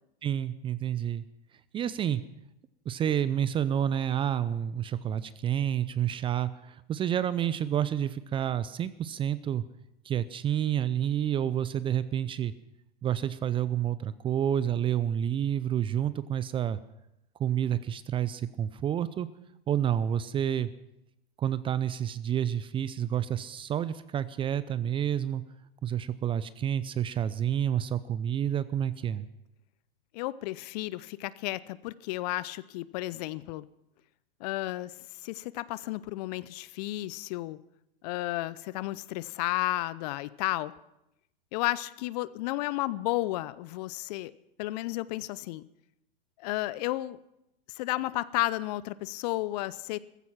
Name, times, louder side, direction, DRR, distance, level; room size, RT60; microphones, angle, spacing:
voice 1, 0.2-1.2 1.7-2.2 2.9-9.6 10.0-12.5 13.0-16.8 17.4-19.3 19.7-20.7 21.4-25.4 25.8-29.3, right 10 dB, 15° right, 16 dB, 0.5 m, -29 dB
voice 2, 30.1-33.6 34.4-34.9 35.2-37.6 38.0-40.7 41.5-44.3 44.6-45.6 46.4-47.2 47.7-50.0, left 17 dB, 45° left, 19 dB, 0.6 m, -32 dB
15.0 x 15.0 x 5.7 m, 0.84 s
hypercardioid pair, 110°, 30 cm